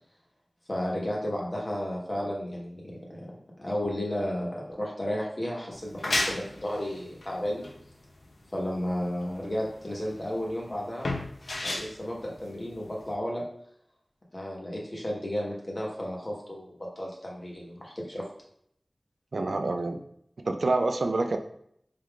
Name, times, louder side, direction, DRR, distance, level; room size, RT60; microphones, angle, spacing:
voice 1, 0.7-3.3 3.6-7.6 8.5-11.1 11.6-13.4 14.3-18.3, equal, 40° left, -3 dB, 1.2 m, -33 dB
sound 1, 5.7-13.1, left 2 dB, 80° left, 0.6 m, -34 dB
voice 2, 19.3-20.0 20.4-21.4, right 2 dB, 85° right, 5 dB, 0.4 m, -27 dB
4.5 x 3.5 x 2.4 m, 0.70 s
wide cardioid pair, 60°, 0 cm